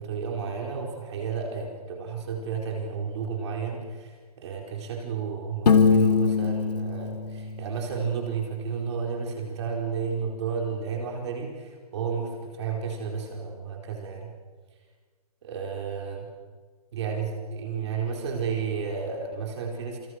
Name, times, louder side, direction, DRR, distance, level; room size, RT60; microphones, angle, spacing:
voice 1, 0.0-14.3 15.4-16.3 16.9-20.1, right 6 dB, 45° right, 1 dB, 4.6 m, -32 dB
Piano, 5.7-8.4, left 6 dB, 85° left, 2.4 m, -23 dB
28.0 x 25.5 x 6.6 m, 1.5 s
hypercardioid pair, 160°, 20 cm